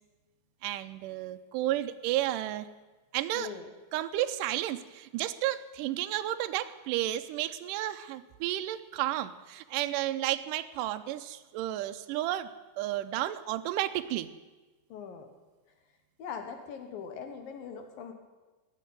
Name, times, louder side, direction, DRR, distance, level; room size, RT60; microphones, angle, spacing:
voice 1, 0.6-2.7 3.1-3.5 3.9-12.5 12.8-14.3, right 14 dB, 85° right, 9 dB, 1.8 m, -32 dB
voice 2, 3.3-3.7 14.9-15.3 16.2-18.1, left 7 dB, 70° left, 5 dB, 2.7 m, -41 dB
17.5 x 6.6 x 9.3 m, 1.2 s
omnidirectional pair, 4.6 m